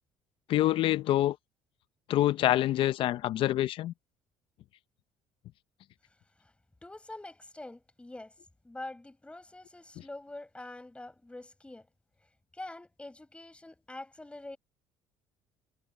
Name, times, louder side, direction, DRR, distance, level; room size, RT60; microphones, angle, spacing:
voice 1, 0.5-1.4 2.1-3.9, left 14 dB, 60° left, 0.7 m, -26 dB
voice 2, 6.8-8.3 8.6-11.9 12.5-14.6, left 2 dB, 10° left, 6.3 m, -45 dB
supercardioid pair, 90°, 10 cm